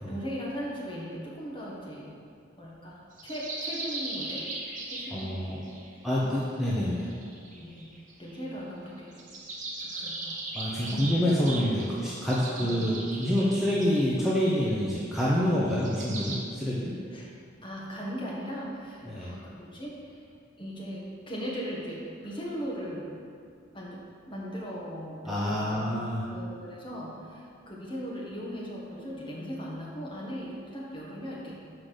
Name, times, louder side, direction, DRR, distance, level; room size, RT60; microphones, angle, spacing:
voice 1, 0.1-2.1 2.6-4.4 4.8-5.8 6.1-6.3 7.5-7.9 8.2-9.2 9.8-10.4 10.8-11.2 12.6-12.9 17.1-17.3 17.6-20.3 20.6-23.1 23.7-25.9 26.3-31.5, equal, 25° left, -5 dB, 1.4 m, -38 dB
sound 1, 3.2-5.9 6.7-8.4 9.1-16.4, right 2 dB, 40° right, 1.0 m, -39 dB
voice 2, 5.1-5.6 6.0-7.1 10.5-16.9 19.1-19.3 25.2-26.3, equal, ahead, -8 dB, 0.7 m, -27 dB
5.9 x 5.0 x 6.4 m, 2.3 s
head